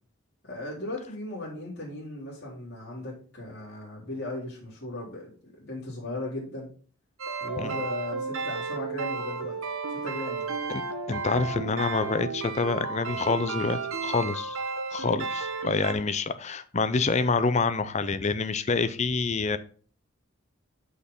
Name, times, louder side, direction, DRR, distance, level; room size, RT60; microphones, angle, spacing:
voice 1, 0.4-6.7 7.4-9.6 10.0-10.5, left 1 dB, 55° left, 3.8 m, -37 dB
sound 1, 7.2-15.9, right 4 dB, 85° right, 1.1 m, -33 dB
voice 2, 11.1-14.6 14.9-19.6, left 4 dB, 35° left, 0.5 m, -27 dB
6.3 x 5.8 x 5.3 m
head